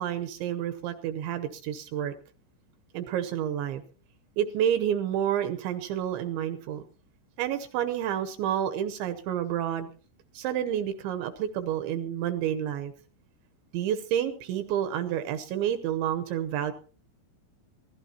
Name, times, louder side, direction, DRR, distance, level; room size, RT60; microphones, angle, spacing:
voice 1, 0.0-2.1 2.9-3.8 4.4-6.8 7.4-9.9 10.3-12.9 13.7-16.7, right 10 dB, 75° right, 9 dB, 2.9 m, -29 dB
24.0 x 17.0 x 2.8 m, 0.39 s
omnidirectional pair, 5.8 m